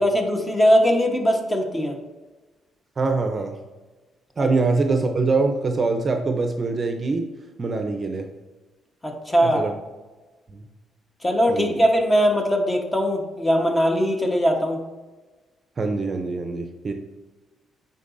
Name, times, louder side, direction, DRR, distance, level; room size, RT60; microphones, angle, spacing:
voice 1, 0.0-2.0 4.4-4.5 9.0-9.6 11.2-14.8, equal, 15° left, 2 dB, 1.1 m, -20 dB
voice 2, 3.0-3.6 4.4-7.3 7.6-8.3 9.4-9.7 10.5-10.7 11.5-11.8 15.8-16.9, right 3 dB, 35° right, 5 dB, 0.6 m, -24 dB
9.3 x 3.9 x 2.6 m, 1.2 s
cardioid pair, 90°, 0 cm